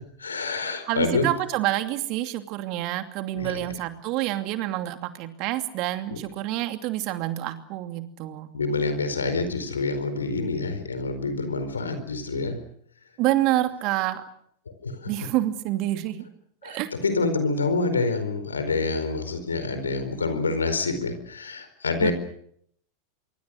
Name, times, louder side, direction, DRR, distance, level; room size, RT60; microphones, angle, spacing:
voice 1, 0.2-1.3 3.3-3.7 6.1-6.2 8.5-12.6 14.8-15.3 16.6-22.1, left 3 dB, 90° left, 10 dB, 4.5 m, -27 dB
voice 2, 0.9-8.5 13.2-14.2 15.1-16.3 16.6-16.9 22.0-22.1, right 15 dB, 50° right, 8 dB, 2.7 m, -27 dB
25.5 x 24.0 x 6.5 m, 0.65 s
hypercardioid pair, 95°, 0 cm